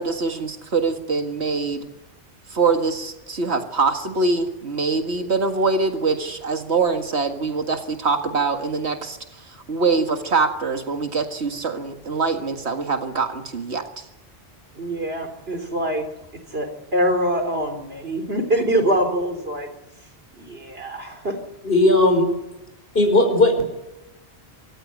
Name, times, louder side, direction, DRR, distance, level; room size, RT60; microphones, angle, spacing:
voice 1, 0.0-1.9 2.5-9.2 9.7-13.8, right 4 dB, 85° right, 5 dB, 2.1 m, -23 dB
voice 2, 14.7-16.1 16.5-19.7 20.4-21.4, right 1 dB, 65° right, 5 dB, 4.1 m, -24 dB
voice 3, 21.6-22.3 22.9-23.6, left 2 dB, 60° left, 6 dB, 5.1 m, -16 dB
26.0 x 14.5 x 9.8 m, 0.96 s
omnidirectional pair, 1.1 m